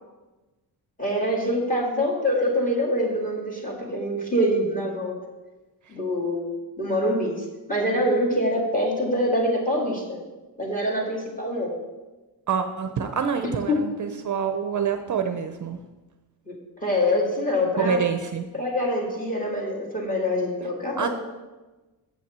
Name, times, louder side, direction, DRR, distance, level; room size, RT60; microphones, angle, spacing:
voice 1, 1.0-5.1 5.9-6.4 6.8-10.2 10.6-11.7 13.7-13.8 16.5-16.6 16.8-18.0 18.5-21.1, left 1 dB, 20° left, 0 dB, 1.9 m, -25 dB
voice 2, 12.5-15.8 17.8-18.4 21.0-21.1, right 6 dB, 45° right, 7 dB, 0.5 m, -26 dB
7.3 x 5.8 x 7.4 m, 1.2 s
wide cardioid pair, 170°, 42 cm